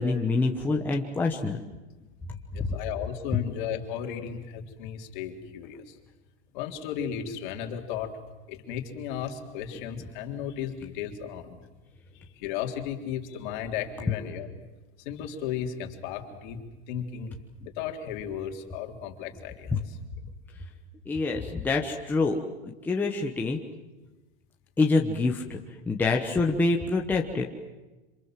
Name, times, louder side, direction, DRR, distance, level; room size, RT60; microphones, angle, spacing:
voice 1, 0.0-1.6 2.6-2.7 19.7-19.8 21.1-23.6 24.8-25.6 25.9-27.4, left 3 dB, 5° left, 0 dB, 1.1 m, -26 dB
voice 2, 2.5-6.0 6.5-8.2 8.5-11.6 12.1-14.6 15.0-17.3 17.8-20.0, left 8 dB, 45° left, 4 dB, 3.5 m, -35 dB
27.5 x 27.0 x 7.6 m, 1.1 s
supercardioid pair, 165°, 34 cm